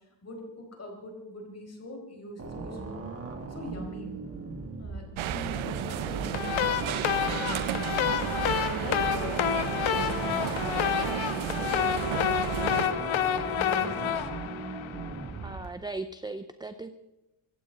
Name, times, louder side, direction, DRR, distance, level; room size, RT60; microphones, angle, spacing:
voice 1, 0.2-3.0 3.5-4.1 4.8-7.0 7.3-7.7 8.6-11.8 12.1-13.0 13.3-14.2, left 1 dB, 30° left, 1 dB, 4.8 m, -42 dB
sound 1, 2.4-15.7, right 4 dB, 30° right, 2.3 m, -39 dB
sound 2, 5.2-12.9, right 10 dB, 90° right, 1.0 m, -33 dB
sound 3, 6.3-15.4, left 9 dB, 80° left, 1.3 m, -29 dB
voice 2, 15.4-16.9, right 3 dB, 10° right, 10 dB, 0.5 m, -37 dB
24.5 x 15.5 x 3.8 m, 0.99 s
wide cardioid pair, 150°, 47 cm